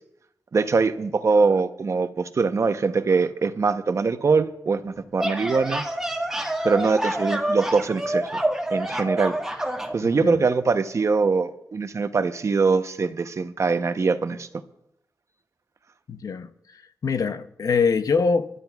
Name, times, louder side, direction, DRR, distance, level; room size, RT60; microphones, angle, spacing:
voice 1, 0.5-5.8 6.6-8.3 8.7-9.4 9.9-14.5, right 4 dB, 50° right, 0.8 m, -22 dB
sound 1, 5.0-10.0, right 1 dB, 5° right, 1.5 m, -27 dB
voice 2, 16.1-16.5 17.0-18.5, left 5 dB, 65° left, 0.7 m, -23 dB
28.5 x 12.5 x 2.4 m
wide cardioid pair, 110°, 7 cm